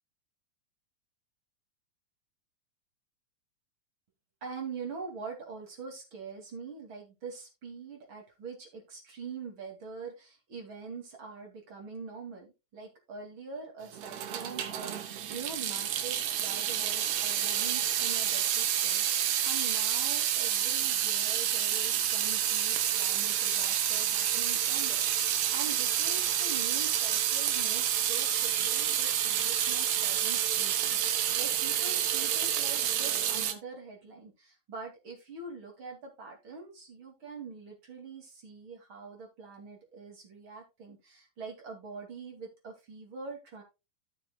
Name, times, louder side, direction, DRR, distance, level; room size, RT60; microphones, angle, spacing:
voice 1, 4.4-43.6, right 4 dB, 40° right, 1 dB, 3.0 m, -44 dB
Water tap faucet / Sink (filling or washing) / Drip, 13.9-33.5, right 10 dB, 70° right, 2.0 m, -29 dB
13.5 x 7.4 x 2.3 m, 0.25 s
omnidirectional pair, 3.7 m